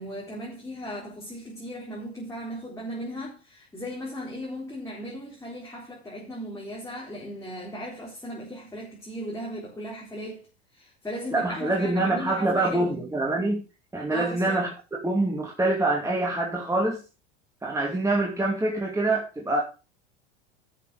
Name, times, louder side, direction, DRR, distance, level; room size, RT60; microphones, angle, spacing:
voice 1, 0.0-10.4 10.7-13.0 14.1-14.6, equal, 10° left, 4.0 m, -37 dB
voice 2, 11.3-13.6 13.9-14.7 15.0-17.0 17.6-19.6, right 2 dB, 10° right, 2.5 m, -25 dB
11.5 x 6.7 x 4.9 m
hypercardioid pair, 90°, 32 cm